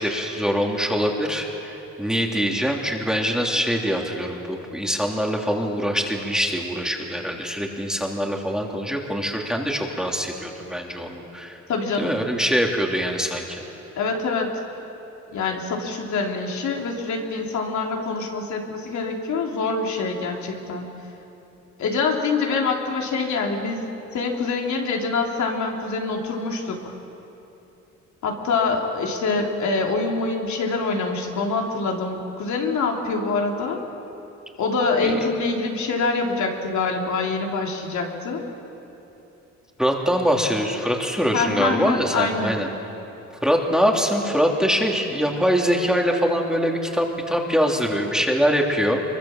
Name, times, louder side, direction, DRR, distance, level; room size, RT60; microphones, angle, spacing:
voice 1, 0.0-11.6 12.0-13.6 35.0-35.2 39.8-42.7 43.4-49.0, equal, ahead, 0 dB, 3.3 m, -23 dB
voice 2, 11.7-12.1 14.0-14.6 15.3-20.9 21.8-23.9 24.1-26.9 28.2-33.8 34.6-38.4 41.3-42.6, left 4 dB, 70° left, 0 dB, 3.7 m, -25 dB
24.5 x 23.5 x 7.5 m, 3.0 s
cardioid pair, 90°, 30 cm